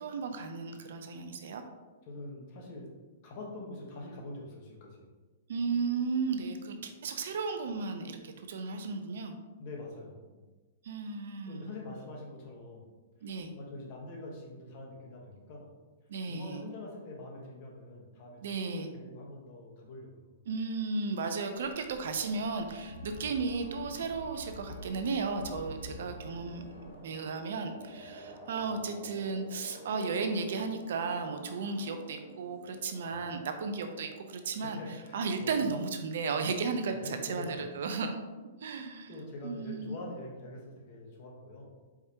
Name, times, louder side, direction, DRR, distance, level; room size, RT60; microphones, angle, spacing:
voice 1, 0.0-1.6 5.5-9.3 10.8-11.7 13.2-13.5 16.1-16.6 18.4-18.9 20.5-26.6 27.0-34.8 35.1-38.2 38.6-39.1 39.4-39.9, right 4 dB, 70° right, 6 dB, 0.5 m, -34 dB
voice 2, 2.0-2.9 3.2-5.1 9.6-10.4 11.0-11.2 11.5-12.9 13.2-15.7 16.3-20.2 25.7-25.9 33.0-33.3 34.6-35.6 36.8-37.6 39.1-41.7, left 2 dB, 40° left, -1 dB, 1.1 m, -45 dB
sound 1, 21.6-27.0, left 1 dB, 80° left, 0.6 m, -48 dB
sound 2, 21.7-35.0, equal, ahead, 1.5 m, -52 dB
Bowed string instrument, 22.2-27.0, left 1 dB, 55° right, 0.9 m, -55 dB
4.7 x 3.3 x 2.8 m, 1.3 s
hypercardioid pair, 155°, 0 cm